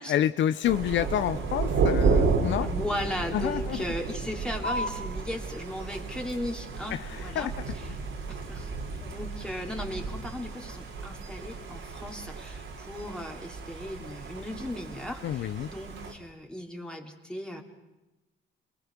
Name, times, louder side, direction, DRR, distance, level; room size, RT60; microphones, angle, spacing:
voice 1, 0.0-2.7 3.3-3.8 6.9-7.5 15.2-15.7, left 10 dB, 70° left, 12 dB, 0.7 m, -28 dB
Thunder, 0.6-16.1, right 4 dB, 75° right, 3.8 m, -32 dB
voice 2, 2.6-7.5 8.3-8.7 9.0-17.6, left 1 dB, 5° left, 1 dB, 2.8 m, -37 dB
sound 1, 4.6-11.6, left 1 dB, 45° left, 2.0 m, -42 dB
28.5 x 19.0 x 6.1 m, 1.0 s
cardioid pair, 90°, 20 cm